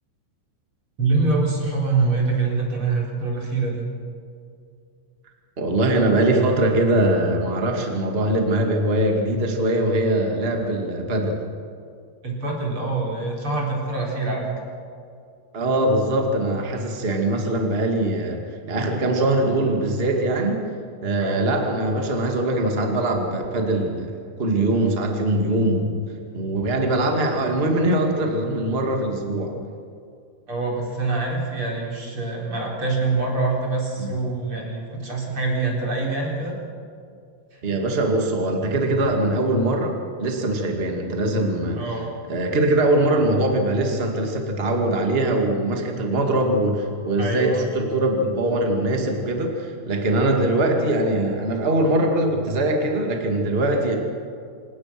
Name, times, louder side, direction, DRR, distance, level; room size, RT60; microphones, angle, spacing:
voice 1, 1.0-3.9 12.2-14.6 21.2-21.4 30.5-36.6 37.5-37.6 41.8-42.1 47.2-47.7, right 3 dB, 30° right, -2 dB, 4.3 m, -25 dB
voice 2, 5.6-11.4 15.5-18.4 18.7-20.6 21.0-25.9 26.3-29.5 34.0-34.1 37.6-41.8 42.3-53.9, right 1 dB, 60° right, 2 dB, 0.6 m, -22 dB
27.5 x 18.0 x 6.1 m, 2.4 s
omnidirectional pair, 5.7 m